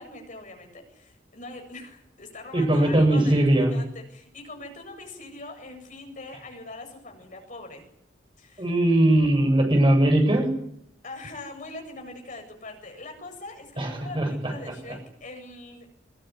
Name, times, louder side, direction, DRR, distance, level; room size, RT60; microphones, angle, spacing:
voice 1, 0.0-7.9 8.4-8.7 11.0-15.9, left 2 dB, 45° left, 4 dB, 7.7 m, -42 dB
voice 2, 2.5-3.8 8.6-10.5 13.8-14.5, right 1 dB, 25° right, 3 dB, 7.9 m, -20 dB
24.5 x 22.0 x 9.9 m, 0.73 s
head